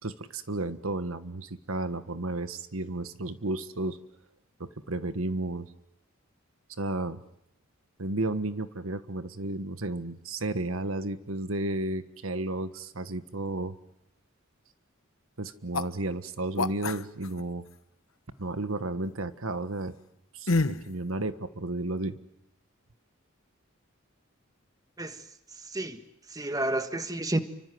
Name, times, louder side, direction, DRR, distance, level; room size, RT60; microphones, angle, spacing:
voice 1, 0.0-4.0 4.6-5.7 6.7-7.2 8.0-13.8 15.4-17.6 18.4-19.9 20.3-22.2, right 2 dB, 80° right, 11 dB, 1.5 m, -33 dB
sound 1, 15.7-15.9 16.6-17.4 20.5-20.9, left 3 dB, 80° left, 1.1 m, -27 dB
voice 2, 25.6-26.0 26.3-27.4, right 1 dB, 20° right, 9 dB, 1.7 m, -30 dB
30.0 x 25.0 x 7.8 m, 0.81 s
head